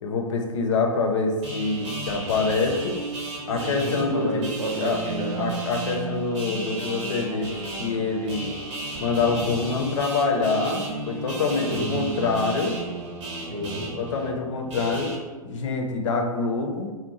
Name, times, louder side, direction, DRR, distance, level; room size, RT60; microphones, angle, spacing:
voice 1, 0.0-3.0 3.5-4.4 4.7-5.0 5.4-7.5 7.8-8.5 9.0-12.7 14.0-15.1 15.4-16.9, left 4 dB, 55° left, 3 dB, 0.5 m, -25 dB
sound 1, 1.4-15.2, right 2 dB, 55° right, 0.8 m, -33 dB
voice 2, 3.4-5.5 11.7-12.0 13.5-13.9, equal, 85° right, -2 dB, 0.7 m, -31 dB
2.6 x 2.1 x 2.9 m, 1.3 s
figure-of-eight pair, 115°, 19 cm